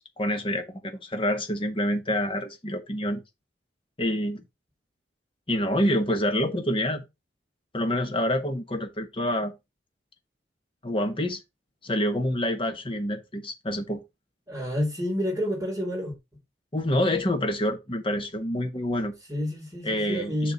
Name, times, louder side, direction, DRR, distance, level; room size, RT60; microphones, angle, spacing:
voice 1, 0.2-3.2 4.0-4.4 5.5-7.0 7.7-9.5 10.8-11.4 11.8-14.0 16.7-19.1 19.8-20.5, left 1 dB, 30° left, 1.3 m, -27 dB
voice 2, 14.5-16.1 19.3-20.5, equal, 15° right, 3.8 m, -29 dB
6.9 x 3.7 x 5.8 m
head